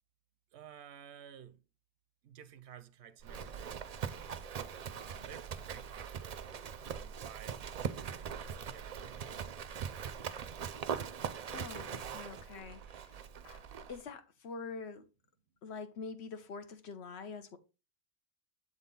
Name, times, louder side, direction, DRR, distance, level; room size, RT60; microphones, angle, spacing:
voice 1, 0.5-1.6 2.2-4.0 4.9-9.2, right 9 dB, 85° right, 0.8 m, -54 dB
Livestock farm animals working animals, 3.2-14.0, right 7 dB, 55° right, 0.4 m, -41 dB
voice 2, 11.5-13.6 13.9-15.0 15.6-17.6, left 4 dB, 85° left, 1.1 m, -45 dB
7.4 x 3.9 x 3.8 m
omnidirectional pair, 1.1 m